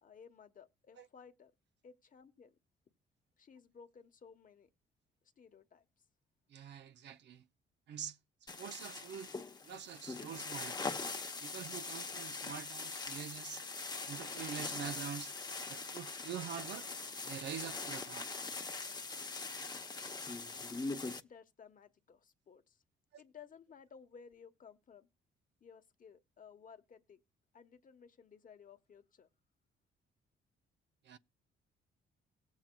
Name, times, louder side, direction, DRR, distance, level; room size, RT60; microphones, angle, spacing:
voice 1, 0.0-1.5 1.8-2.6 3.4-4.7 5.4-5.9 21.2-22.8 23.2-25.1 25.6-27.2 27.5-29.3, left 6 dB, 45° left, 1.0 m, -57 dB
voice 2, 6.5-7.5 7.9-9.3 9.6-10.9 11.4-13.6 14.1-15.3 15.7-16.9 17.3-18.3 23.1-23.2 31.0-31.2, right 8 dB, 65° right, 0.5 m, -45 dB
sound 1, 8.5-21.2, left 3 dB, 20° left, 0.8 m, -42 dB
18.0 x 7.3 x 2.2 m
cardioid pair, 90°, 20 cm